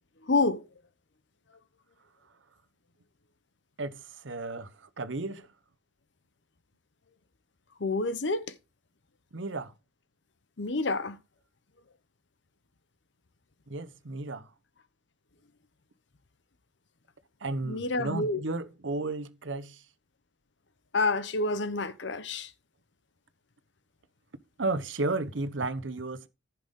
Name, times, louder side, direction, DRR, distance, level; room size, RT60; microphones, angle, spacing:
voice 1, 0.3-0.6 7.8-8.5 10.6-11.2 17.6-18.4 20.9-22.5, left 3 dB, 70° left, 0.9 m, -28 dB
voice 2, 3.8-5.5 9.3-9.7 13.7-14.5 17.4-19.9 24.6-26.3, right 2 dB, 80° right, 1.0 m, -33 dB
14.5 x 5.9 x 3.7 m
head